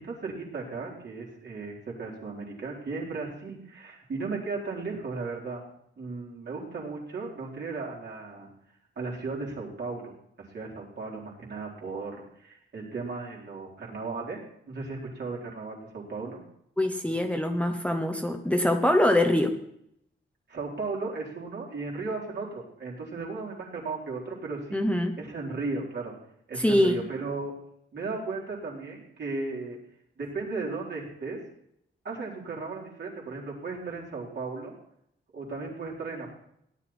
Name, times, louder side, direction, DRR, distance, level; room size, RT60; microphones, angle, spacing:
voice 1, 0.0-5.7 6.0-8.5 9.0-10.1 10.4-14.4 14.7-16.4 20.5-24.8 25.2-26.1 26.5-27.5 27.9-29.8 30.2-31.4 32.0-34.8 35.3-36.3, right 3 dB, 55° right, -3 dB, 4.1 m, -35 dB
voice 2, 16.8-19.6 24.7-25.2 26.5-27.0, left 1 dB, 5° left, 4 dB, 1.0 m, -24 dB
17.0 x 11.0 x 4.4 m, 0.73 s
wide cardioid pair, 160°, 21 cm